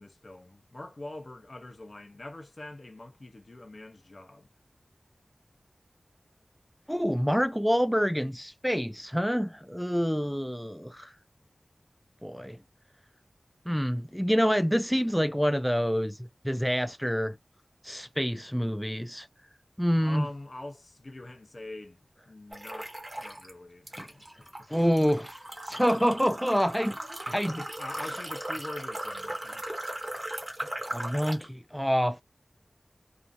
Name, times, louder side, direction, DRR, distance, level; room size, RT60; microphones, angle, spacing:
voice 1, 0.0-4.5 20.0-24.9 27.4-29.7, left 2 dB, 55° left, 0.6 m, -44 dB
voice 2, 6.9-11.1 12.2-12.6 13.7-16.2 16.4-17.4 17.8-19.3 19.8-20.3 24.7-25.4 25.7-27.0 27.3-27.6 30.9-32.2, equal, ahead, 0.3 m, -27 dB
sound 1, 22.5-23.5 23.9-31.5, right 1 dB, 30° right, 1.1 m, -38 dB
2.5 x 2.4 x 2.4 m
wide cardioid pair, 75°, 0 cm